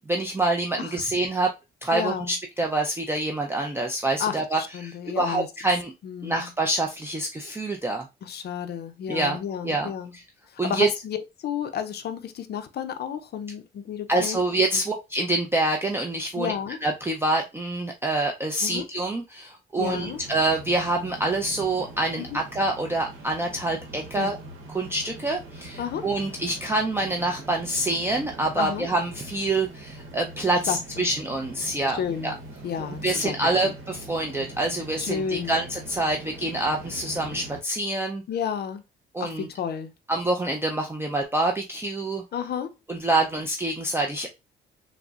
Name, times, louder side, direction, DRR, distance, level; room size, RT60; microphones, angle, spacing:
voice 1, 0.0-1.5 1.8-5.9 6.2-8.1 9.1-9.4 9.6-10.2 10.6-10.9 14.1-16.5 16.8-24.4 24.7-32.3 32.8-38.2 39.1-39.5 40.1-42.2 42.9-44.3, right 2 dB, 10° right, 0.4 m, -26 dB
voice 2, 1.9-2.3 4.2-5.5 6.0-6.5 8.2-10.1 10.5-14.4 16.3-16.8 18.6-18.9 19.8-20.2 22.2-22.3 24.2-24.4 25.8-26.1 28.5-28.9 30.7-31.1 31.9-32.3 32.6-33.4 33.6-33.7 35.0-35.6 38.3-38.8 39.2-39.9 42.3-42.7, left 8 dB, 55° left, 0.4 m, -31 dB
sound 1, 19.8-37.6, right 1 dB, 85° right, 0.8 m, -42 dB
3.5 x 2.0 x 2.3 m
cardioid pair, 90°, 20 cm